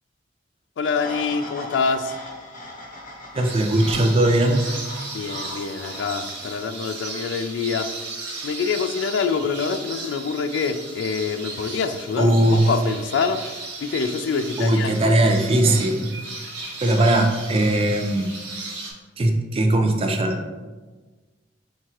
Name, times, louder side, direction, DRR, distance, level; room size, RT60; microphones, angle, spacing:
voice 1, 0.8-2.1 5.1-7.9 8.4-13.4 13.8-15.1, left 5 dB, 70° left, 9 dB, 0.3 m, -25 dB
sound 1, 0.8-6.5, left 1 dB, 50° left, 0.8 m, -38 dB
voice 2, 3.3-4.6 5.2-5.3 12.2-12.7 14.6-16.1 16.8-18.3 19.2-20.4, right 1 dB, 30° right, 5 dB, 0.4 m, -19 dB
sound 2, 3.4-18.9, right 3 dB, 70° right, 1.0 m, -36 dB
4.5 x 3.6 x 2.9 m, 1.3 s
head